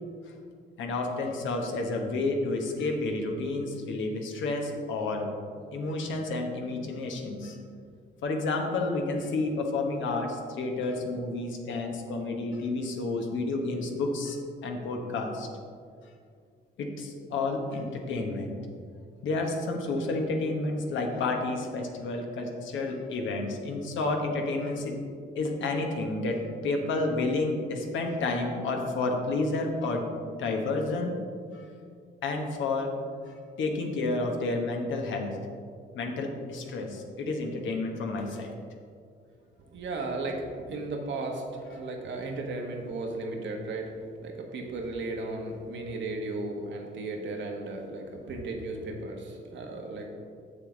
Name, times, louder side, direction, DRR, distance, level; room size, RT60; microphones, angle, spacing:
voice 1, 0.8-5.3 5.7-7.6 8.2-14.4 14.6-15.5 16.8-18.6 19.2-25.0 25.3-30.1 30.4-31.2 31.5-31.7 32.2-32.9 33.3-35.4 35.9-38.5, left 2 dB, 75° left, 2 dB, 1.2 m, -30 dB
voice 2, 39.7-41.4 41.7-50.1, right 2 dB, 65° right, 1 dB, 1.3 m, -35 dB
7.1 x 6.6 x 3.8 m, 2.2 s
cardioid pair, 90°, 20 cm